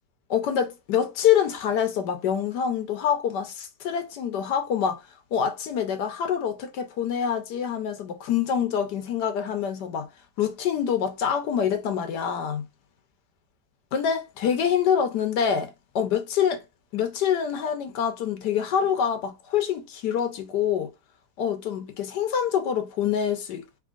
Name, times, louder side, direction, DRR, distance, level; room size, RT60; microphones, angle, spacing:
voice 1, 0.3-5.0 5.3-10.1 10.4-12.7 13.9-16.6 16.9-20.9 21.4-23.6, left 8 dB, 85° left, 1.4 m, -26 dB
4.3 x 3.6 x 2.4 m
omnidirectional pair, 1.8 m